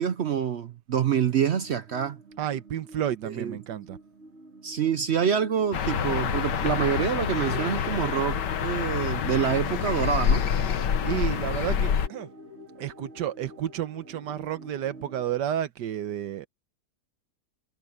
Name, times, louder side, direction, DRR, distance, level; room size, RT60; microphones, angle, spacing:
voice 1, 0.0-2.2 3.2-3.6 4.6-10.4, right 8 dB, 60° right, 0.7 m, -26 dB
sound 1, 0.9-15.3, right 1 dB, 40° right, 3.2 m, -48 dB
voice 2, 2.4-4.0 11.0-12.3 12.8-16.5, right 11 dB, 90° right, 1.5 m, -31 dB
sound 2, 5.7-12.1, left 8 dB, 85° left, 1.8 m, -27 dB
omnidirectional pair, 1.8 m